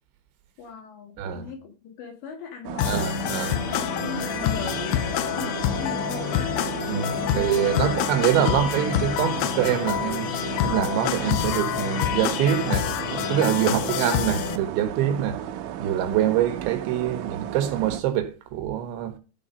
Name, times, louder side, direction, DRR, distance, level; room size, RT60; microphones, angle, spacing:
voice 1, 0.6-3.0 3.7-6.6 7.1-7.9 13.7-13.8, left 6 dB, 65° left, 4.3 m, -38 dB
voice 2, 1.2-1.5 2.8-3.6 6.9-10.3 10.6-15.4 15.8-19.2, right 10 dB, 75° right, 3.3 m, -25 dB
sound 1, 2.7-18.0, right 11 dB, 90° right, 3.5 m, -34 dB
sound 2, 2.8-14.6, left 13 dB, 85° left, 3.4 m, -27 dB
14.0 x 4.8 x 5.3 m
omnidirectional pair, 5.6 m